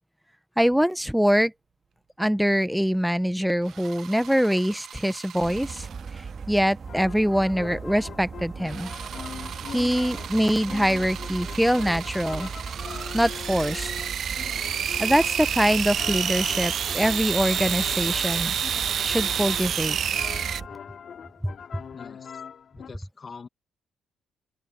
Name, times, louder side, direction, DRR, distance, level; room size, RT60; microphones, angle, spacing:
voice 1, 0.6-1.5 2.2-5.9 6.5-8.9 9.7-12.5 13.1-13.9 15.0-18.5 19.0-20.0 21.4-21.5, equal, ahead, 0.8 m, -24 dB
sound 1, 3.7-6.2 8.7-20.6, right 9 dB, 60° right, 0.4 m, -30 dB
sound 2, 5.4-20.7, right 5 dB, 40° right, 2.3 m, -38 dB
sound 3, 6.9-22.9, left 7 dB, 55° left, 2.3 m, -42 dB
voice 2, 21.9-22.4 22.7-23.5, left 5 dB, 40° left, 1.6 m, -44 dB
open air
cardioid pair, 90°, 0 cm